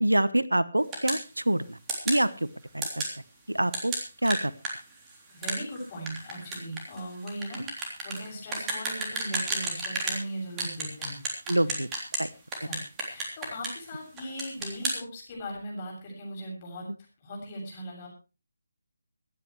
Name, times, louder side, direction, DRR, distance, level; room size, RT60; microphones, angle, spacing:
voice 1, 0.0-1.8 2.0-2.3 2.7-3.0 3.5-3.9 4.2-4.5 11.5-11.9 12.2-12.3, right 1 dB, 90° right, 17 dB, 1.0 m, -25 dB
sound 1, 0.9-1.2 1.9-2.2 2.8-3.1 3.7-10.2 10.6-12.2 12.5-13.9 14.2-15.0, right 2 dB, 15° right, 3.3 m, -32 dB
voice 2, 5.3-11.2 11.7-11.8 12.6-16.8 17.2-18.1, equal, 25° left, 0 dB, 7.2 m, -39 dB
24.5 x 9.9 x 3.2 m, 0.31 s
figure-of-eight pair, 155°, 0 cm